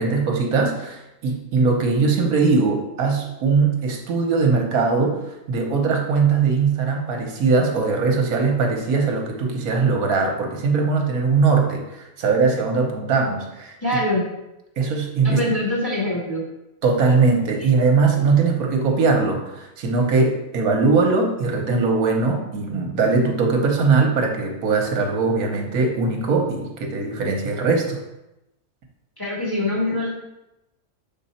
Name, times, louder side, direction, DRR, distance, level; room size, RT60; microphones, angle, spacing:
voice 1, 0.0-5.2 5.5-13.7 14.8-15.4 16.8-28.0, right 4 dB, 70° right, 2 dB, 1.4 m, -20 dB
voice 2, 13.8-14.2 15.2-16.4 29.2-30.1, left 1 dB, 15° left, -7 dB, 2.1 m, -23 dB
6.5 x 3.8 x 4.2 m, 0.92 s
omnidirectional pair, 1.6 m